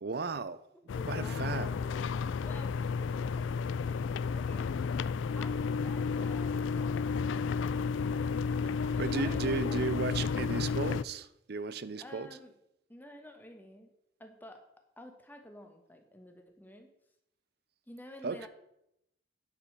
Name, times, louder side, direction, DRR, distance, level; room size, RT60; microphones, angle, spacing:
voice 1, 0.0-0.7 1.1-1.7 8.6-12.3 18.2-18.5, right 4 dB, 55° right, 0.5 m, -35 dB
sound 1, 0.9-11.0, left 5 dB, 75° left, 0.3 m, -32 dB
voice 2, 0.9-2.0 2.4-2.7 3.0-3.4 4.3-4.7 5.0-7.5 9.1-10.5 12.0-12.5 12.9-13.9 14.2-14.6 15.0-16.9 17.9-18.5, left 1 dB, 10° left, 1.2 m, -50 dB
10.0 x 5.4 x 6.6 m
head